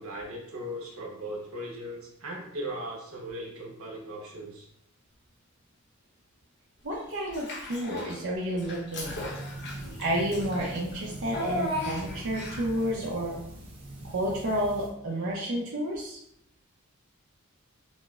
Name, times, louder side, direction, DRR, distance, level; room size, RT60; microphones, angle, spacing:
voice 1, 0.0-4.7, right 1 dB, 80° right, -1 dB, 1.0 m, -38 dB
voice 2, 6.8-9.2 10.0-13.4 14.1-16.2, equal, 65° right, -4 dB, 0.6 m, -30 dB
Child speech kid speaking / Bathtub (filling or washing), 7.3-8.2 8.6-12.8, left 1 dB, 55° left, 0.9 m, -36 dB
sound 1, 9.0-14.9, right 1 dB, 25° right, 1.0 m, -42 dB
6.1 x 2.0 x 2.4 m, 0.73 s
head